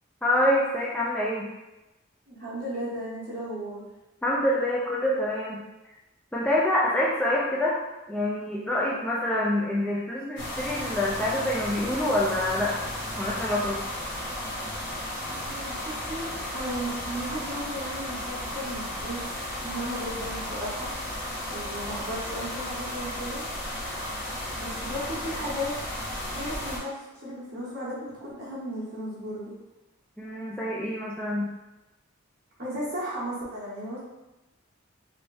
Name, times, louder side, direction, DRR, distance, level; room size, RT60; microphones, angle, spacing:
voice 1, 0.2-1.5 4.2-5.6 6.3-7.8 8.1-12.8 13.2-13.8 30.2-31.5, left 1 dB, 5° left, -6 dB, 0.3 m, -26 dB
voice 2, 2.3-3.8 15.3-20.9 21.5-23.5 24.6-25.7 26.3-29.5 32.6-34.0, equal, 50° right, -8 dB, 1.2 m, -35 dB
sound 1, 10.4-26.8, left 1 dB, 60° left, 0.9 m, -34 dB
3.2 x 2.6 x 3.3 m, 1.0 s
head